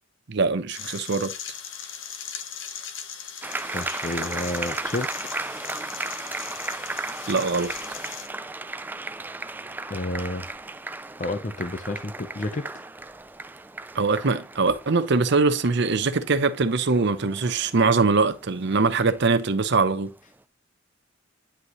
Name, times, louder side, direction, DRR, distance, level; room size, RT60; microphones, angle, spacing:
voice 1, 0.3-1.3 7.3-7.7 13.9-20.1, right 4 dB, 60° right, 0.7 m, -22 dB
sound 1, 0.7-8.3, left 7 dB, 65° left, 1.1 m, -38 dB
sound 2, 3.4-20.1, right 2 dB, 10° right, 0.3 m, -36 dB
voice 2, 3.7-5.1 9.9-10.5 11.2-12.6, left 2 dB, 40° left, 0.8 m, -30 dB
10.0 x 5.4 x 3.1 m
head